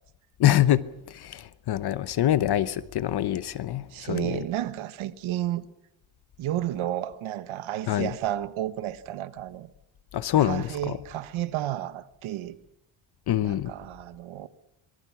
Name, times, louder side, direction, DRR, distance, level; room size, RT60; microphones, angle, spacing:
voice 1, 0.4-0.8 1.1-4.4 7.9-8.1 10.1-11.0 13.3-13.7, left 12 dB, 55° left, 0.9 m, -25 dB
voice 2, 3.9-5.7 6.4-9.7 10.4-12.6 13.4-14.5, right 13 dB, 80° right, 1.4 m, -32 dB
26.0 x 23.0 x 6.0 m
cardioid pair, 135°, 48 cm